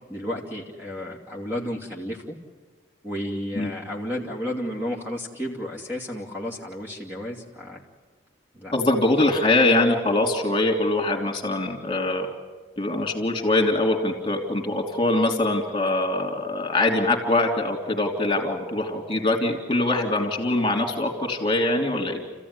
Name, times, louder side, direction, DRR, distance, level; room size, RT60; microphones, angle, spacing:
voice 1, 0.1-2.4 3.0-7.8 8.5-8.7, equal, 10° right, -1 dB, 2.6 m, -32 dB
voice 2, 8.7-12.3 12.8-22.2, left 2 dB, 25° left, 2 dB, 3.1 m, -23 dB
30.0 x 15.0 x 9.8 m, 1.4 s
head